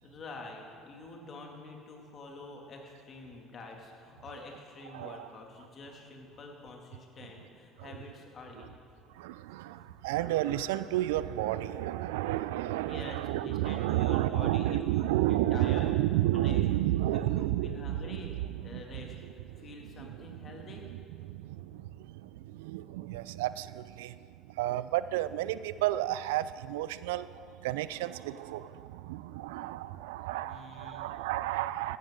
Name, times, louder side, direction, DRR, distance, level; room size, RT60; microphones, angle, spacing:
voice 1, 0.0-8.9 12.8-16.0 16.3-16.6 17.1-20.9 30.4-31.1, left 2 dB, 45° left, 1 dB, 2.4 m, -47 dB
voice 2, 4.9-5.3 7.8-7.9 8.6-8.7 9.1-19.7 20.0-24.2 24.5-32.0, right 14 dB, 75° right, 15 dB, 0.3 m, -32 dB
16.0 x 11.5 x 3.8 m, 2.3 s
hypercardioid pair, 65°, 0 cm